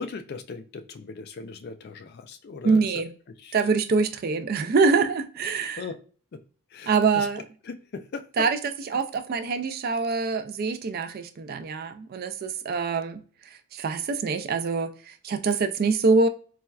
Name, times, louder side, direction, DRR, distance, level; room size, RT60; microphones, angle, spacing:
voice 1, 0.0-3.0 3.4-3.6 5.8-6.0 6.7-7.3 7.6-8.5, left 4 dB, 45° left, 0.3 m, -38 dB
voice 2, 2.6-3.1 3.5-5.8 6.9-7.4 8.4-8.6 8.9-13.2 13.7-16.3, right 4 dB, 45° right, 0.3 m, -24 dB
4.2 x 2.2 x 2.3 m
head